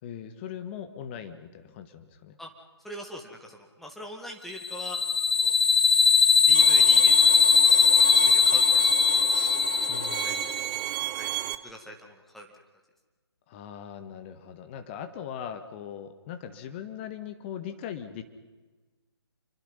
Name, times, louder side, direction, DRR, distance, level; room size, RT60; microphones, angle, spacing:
voice 1, 0.0-2.4 9.9-10.5 13.5-18.2, left 8 dB, 25° left, 8 dB, 1.8 m, -40 dB
voice 2, 2.8-5.0 5.3-5.5 6.5-7.2 7.8-9.3 10.2-10.4 10.7-10.8 11.1-12.5, equal, ahead, 1 dB, 2.2 m, -43 dB
sound 1, 4.6-10.6, left 5 dB, 70° left, 0.9 m, -20 dB
Bowed string instrument, 6.5-11.5, right 14 dB, 20° right, 0.8 m, -34 dB
28.0 x 24.0 x 5.7 m, 1.3 s
figure-of-eight pair, 140°, 14 cm